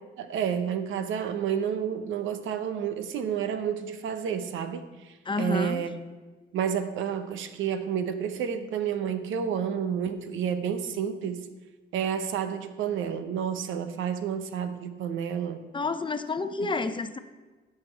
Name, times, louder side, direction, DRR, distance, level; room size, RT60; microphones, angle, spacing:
voice 1, 0.2-6.0 6.5-11.5 11.9-15.6, right 8 dB, 80° right, 10 dB, 0.9 m, -30 dB
voice 2, 5.3-5.8 15.7-17.2, left 3 dB, 25° left, 10 dB, 0.6 m, -29 dB
16.5 x 5.9 x 4.5 m, 1.3 s
cardioid pair, 90°, 20 cm